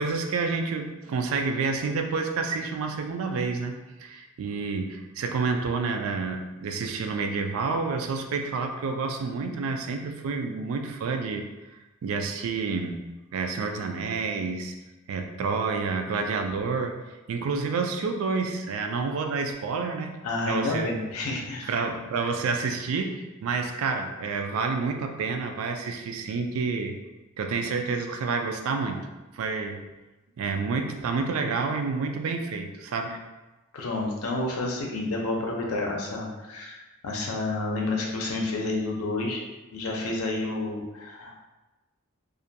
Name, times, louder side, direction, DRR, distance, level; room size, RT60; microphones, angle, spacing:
voice 1, 0.0-3.7 4.0-11.5 12.0-13.0 13.3-14.7 15.1-20.2 20.5-20.9 21.7-27.0 27.4-29.1 29.3-29.9 30.4-33.2, right 4 dB, 75° right, 5 dB, 0.3 m, -29 dB
voice 2, 20.2-21.7 33.7-36.8 37.0-39.4 39.7-41.4, left 2 dB, 90° left, 0 dB, 0.5 m, -30 dB
2.4 x 2.2 x 2.6 m, 1.1 s
head